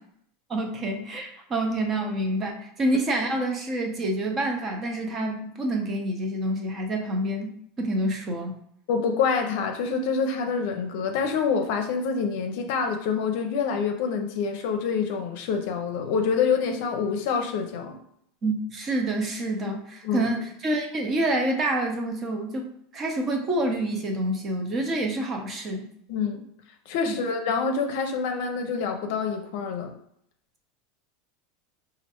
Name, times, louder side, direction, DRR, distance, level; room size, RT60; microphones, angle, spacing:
voice 1, 0.5-8.5 18.4-22.7 22.9-25.9 27.1-27.2, right 1 dB, 25° right, 2 dB, 0.7 m, -27 dB
voice 2, 8.9-18.0 20.0-20.3 26.1-26.4 26.9-29.9, left 5 dB, 65° left, 4 dB, 0.5 m, -26 dB
4.3 x 2.5 x 2.9 m, 0.72 s
supercardioid pair, 145°, 0 cm